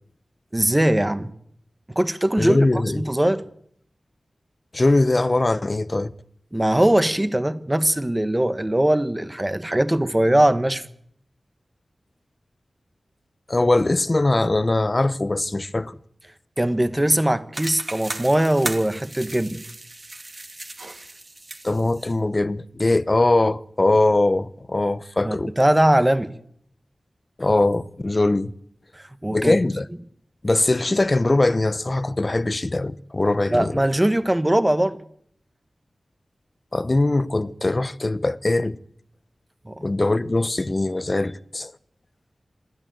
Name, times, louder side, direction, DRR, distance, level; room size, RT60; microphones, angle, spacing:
voice 1, 0.5-1.3 1.9-2.6 2.9-3.5 6.5-10.9 16.6-19.6 25.2-26.3 28.9-29.6 33.5-35.0 39.6-39.8, right 1 dB, 15° right, 1.3 m, -21 dB
voice 2, 2.4-3.0 4.7-6.1 13.5-16.0 21.6-25.5 27.4-28.5 29.3-29.9 30.4-33.8 36.7-38.8 39.8-41.7, left 2 dB, 30° left, 0.9 m, -21 dB
sound 1, 17.5-22.1, right 2 dB, 40° right, 2.4 m, -36 dB
27.0 x 12.0 x 9.2 m
wide cardioid pair, 95°, 0 cm